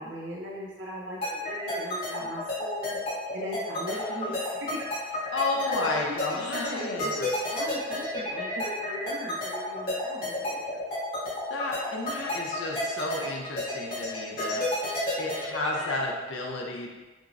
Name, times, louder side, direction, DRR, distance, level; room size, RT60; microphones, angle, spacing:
voice 1, 0.0-3.0 3.3-4.7 5.0-5.2 5.7-10.8, equal, 70° right, -5 dB, 0.5 m, -38 dB
sound 1, 1.2-15.9, left 1 dB, 50° left, 1.4 m, -31 dB
voice 2, 5.3-7.3 11.5-14.7 15.2-16.9, left 2 dB, 85° left, 0 dB, 0.6 m, -32 dB
5.8 x 2.0 x 2.5 m, 1.2 s
head